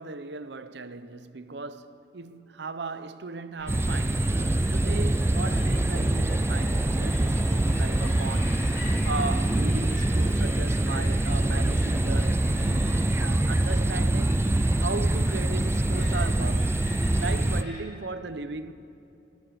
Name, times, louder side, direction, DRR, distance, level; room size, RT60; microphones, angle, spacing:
voice 1, 0.0-14.4 14.8-16.8 17.2-18.7, right 3 dB, 70° right, 0.8 m, -37 dB
sound 1, 3.6-17.8, left 2 dB, 75° left, 3.8 m, -44 dB
sound 2, 3.7-17.6, right 1 dB, 15° right, 0.4 m, -24 dB
19.0 x 19.0 x 7.6 m
head